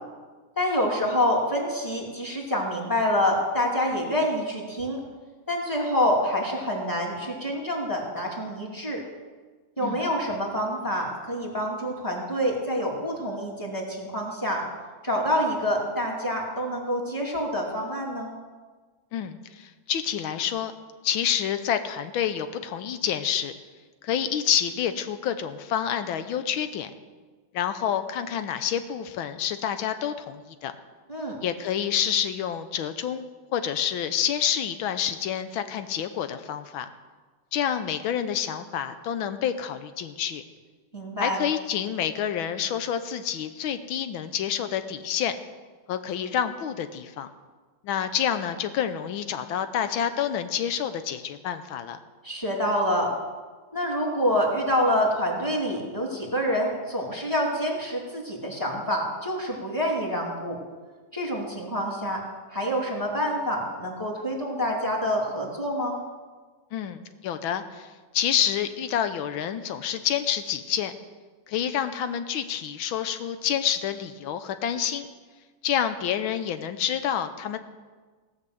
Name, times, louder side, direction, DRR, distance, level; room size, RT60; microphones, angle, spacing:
voice 1, 0.6-5.0 5.5-9.0 9.8-14.6 15.0-18.3 31.1-31.4 40.9-41.4 52.2-53.1 53.7-60.6 61.1-62.2 62.5-66.0, equal, 10° left, -2 dB, 2.4 m, -27 dB
voice 2, 19.1-20.7 21.0-23.5 24.0-26.9 27.5-30.7 31.4-33.2 33.5-36.9 37.5-40.4 41.2-45.4 45.9-47.3 47.8-52.0 66.7-67.9 68.1-70.9 71.5-75.1 75.6-77.6, left 9 dB, 85° left, 10 dB, 1.6 m, -28 dB
17.0 x 5.9 x 7.9 m, 1.4 s
omnidirectional pair, 2.2 m